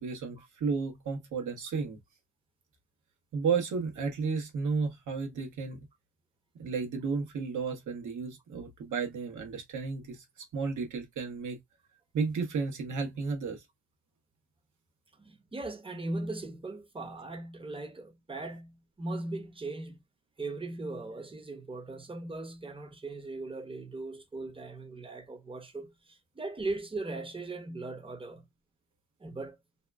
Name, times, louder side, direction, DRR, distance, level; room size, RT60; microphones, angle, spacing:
voice 1, 0.0-2.0 3.3-5.8 6.6-10.2 10.5-11.6 12.1-13.6, right 5 dB, 70° right, 1.2 m, -33 dB
voice 2, 15.2-20.0 20.4-28.4 29.2-29.6, right 2 dB, 15° right, 0.8 m, -39 dB
2.8 x 2.3 x 2.3 m
supercardioid pair, 55°, 31 cm